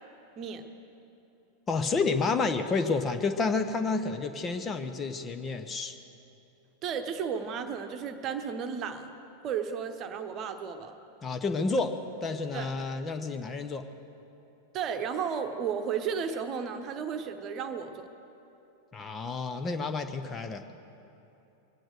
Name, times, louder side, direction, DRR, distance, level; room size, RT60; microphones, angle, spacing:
voice 1, 1.7-6.0 11.2-13.8 18.9-20.6, left 4 dB, 20° left, 7 dB, 0.9 m, -30 dB
voice 2, 6.8-9.1 9.4-10.9 12.5-12.7 14.7-18.1, right 7 dB, 35° right, 7 dB, 1.1 m, -33 dB
23.5 x 9.0 x 6.5 m, 3.0 s
figure-of-eight pair, 90°, 0 cm